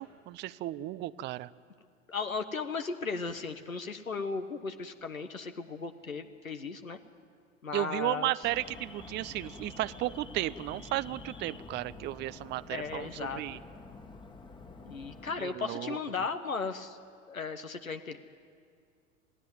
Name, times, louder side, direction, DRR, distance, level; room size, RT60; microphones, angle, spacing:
voice 1, 0.0-1.5 7.7-13.6 15.4-16.0, right 15 dB, 25° right, 17 dB, 0.6 m, -34 dB
voice 2, 2.1-7.0 7.6-8.4 12.7-13.4 14.8-17.0 17.3-18.2, left 4 dB, 90° left, 7 dB, 1.2 m, -36 dB
Alarm, 8.4-15.3, left 3 dB, 10° left, 1.5 m, -48 dB
27.5 x 18.0 x 9.3 m, 2.2 s
figure-of-eight pair, 85°, 40 cm